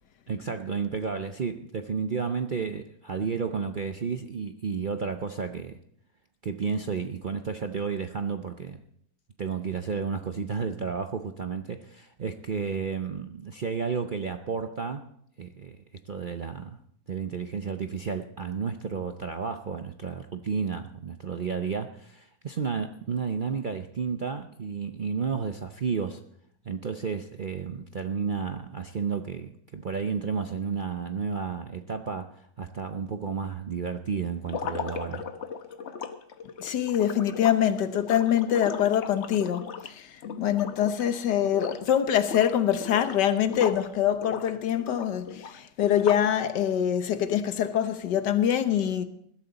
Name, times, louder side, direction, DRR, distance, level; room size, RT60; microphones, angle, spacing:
voice 1, 0.3-5.8 6.4-8.8 9.4-15.1 15.4-16.8 17.1-26.2 26.6-35.3, right 5 dB, 55° right, 0.5 m, -32 dB
sound 1, 34.4-41.1 41.4-41.9 42.2-43.9 44.2-46.4, left 6 dB, 50° left, 1.0 m, -37 dB
voice 2, 36.6-49.1, left 10 dB, 85° left, 1.6 m, -25 dB
20.5 x 12.5 x 4.1 m
omnidirectional pair, 1.8 m